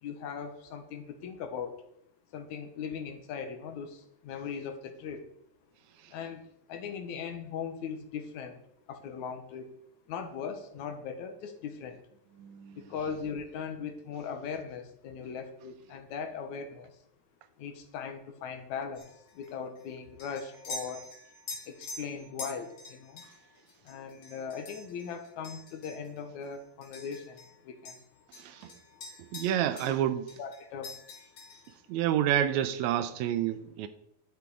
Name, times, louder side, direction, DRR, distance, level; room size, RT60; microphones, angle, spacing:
voice 1, 0.0-1.8 2.3-5.3 6.1-8.6 8.9-9.7 10.1-12.0 12.8-17.0 17.6-21.1 21.7-23.2 23.8-28.0 29.2-29.3 29.7-29.8 30.4-31.0, left 6 dB, 75° left, 2.4 m, -39 dB
voice 2, 12.4-12.8 28.4-28.6 29.3-30.2 31.9-33.9, right 11 dB, 80° right, 1.9 m, -28 dB
sound 1, 19.0-27.6 27.9-30.0 30.3-31.8, left 2 dB, 55° left, 2.9 m, -46 dB
11.0 x 7.0 x 4.8 m
omnidirectional pair, 3.4 m